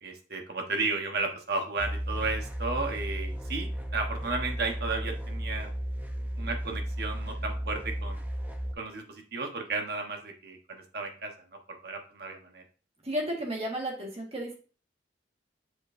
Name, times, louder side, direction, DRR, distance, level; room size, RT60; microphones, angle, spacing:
voice 1, 0.0-5.7 6.4-8.3 8.8-11.3 11.7-12.6, right 3 dB, 60° right, 3 dB, 1.2 m, -33 dB
sound 1, 1.8-8.7, equal, 10° right, 0.8 m, -34 dB
voice 2, 13.0-14.5, equal, 35° right, -1 dB, 1.7 m, -33 dB
7.2 x 5.1 x 2.6 m, 0.38 s
head